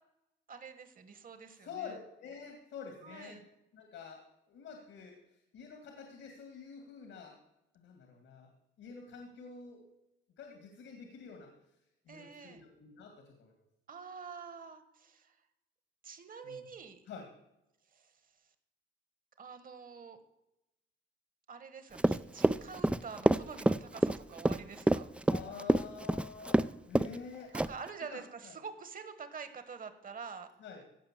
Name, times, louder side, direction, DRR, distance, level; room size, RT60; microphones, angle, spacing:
voice 1, 0.5-1.9 3.0-3.4 12.1-12.6 13.9-15.4 16.0-17.0 17.9-18.1 19.4-20.2 21.5-25.1 27.7-30.5, right 6 dB, 45° right, 10 dB, 1.5 m, -47 dB
voice 2, 1.5-3.4 3.7-7.4 7.7-8.5 8.8-9.8 10.4-11.5 12.1-13.7 16.4-16.6 17.1-17.3 25.3-27.5 28.1-28.6 30.6-30.8, left 6 dB, 80° left, 3 dB, 2.2 m, -48 dB
Run, 22.0-26.7 26.9-27.2 27.5-27.9, right 1 dB, 5° right, 0.3 m, -27 dB
16.0 x 5.7 x 7.4 m, 0.92 s
cardioid pair, 90°, 20 cm